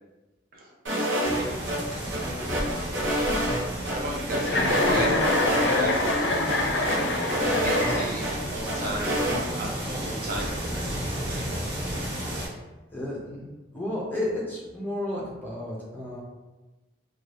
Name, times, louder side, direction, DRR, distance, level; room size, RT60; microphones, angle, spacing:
voice 1, 0.5-1.7 3.8-6.9 7.3-9.2 9.6-11.5, right 1 dB, 50° right, -1 dB, 0.5 m, -35 dB
sound 1, 0.9-1.8 2.1-3.9 4.3-5.8 6.0-6.1 6.5-8.3 8.7-9.4, equal, 90° right, 0.9 m, -27 dB
sound 2, 1.2-12.5, equal, 75° right, 1.2 m, -33 dB
Chuckle chortle, 4.4-8.5, left 2 dB, 70° left, 0.4 m, -26 dB
voice 2, 12.9-13.5 13.7-16.2, left 1 dB, 10° left, -5 dB, 0.6 m, -32 dB
2.7 x 2.3 x 3.2 m, 1.1 s
head